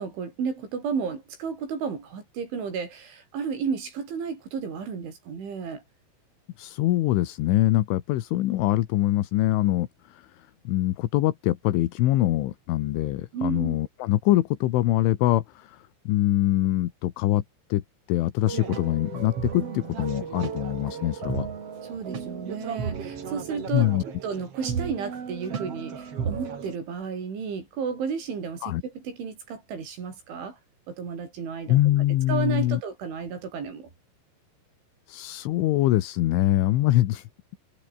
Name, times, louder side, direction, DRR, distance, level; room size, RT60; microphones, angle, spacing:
voice 1, 0.0-5.8 13.3-13.8 21.8-23.9 24.2-30.6 30.9-31.8 32.3-33.9, right 6 dB, 75° right, 8.5 m, -32 dB
voice 2, 6.6-10.3 10.7-17.4 17.7-17.8 18.1-21.5 23.7-24.0 28.6-28.8 31.7-32.8 35.1-37.3, left 15 dB, 80° left, 3.8 m, -24 dB
sound 1, 18.5-26.7, right 6 dB, 40° right, 2.8 m, -34 dB
omnidirectional pair, 5.5 m